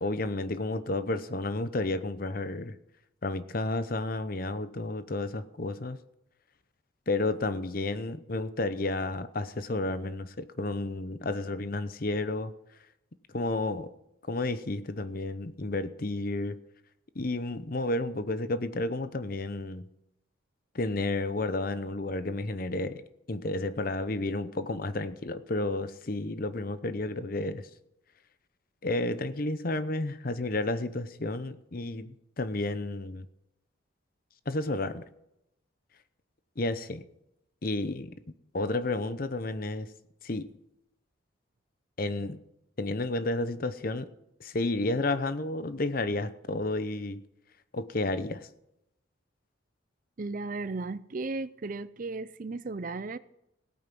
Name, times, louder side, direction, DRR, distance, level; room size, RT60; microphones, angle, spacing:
voice 1, 0.0-2.8 3.2-6.0 7.1-12.5 13.3-13.9 14.3-16.6 17.1-19.9 20.7-23.0 23.3-27.7 28.8-33.3 34.5-35.0 36.6-37.0 37.6-38.1 38.5-39.9 40.2-40.5 42.0-42.4 42.8-44.1 44.4-47.2 47.7-48.5, left 2 dB, 45° left, 0.8 m, -31 dB
voice 2, 50.2-53.2, right 3 dB, 40° right, 0.5 m, -35 dB
16.5 x 9.1 x 6.0 m
head